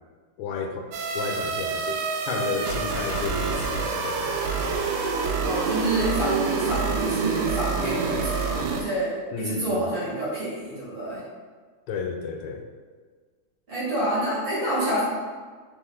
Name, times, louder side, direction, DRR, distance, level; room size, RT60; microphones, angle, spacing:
voice 1, 0.4-0.9 1.1-4.4 9.3-9.8 11.9-12.6, left 5 dB, 90° left, 3 dB, 1.5 m, -32 dB
sound 1, 0.9-8.8, right 5 dB, 85° right, 1.5 m, -27 dB
voice 2, 5.4-11.2 13.7-15.0, right 1 dB, 40° right, -9 dB, 2.0 m, -28 dB
4.0 x 3.1 x 3.8 m, 1.5 s
omnidirectional pair, 2.4 m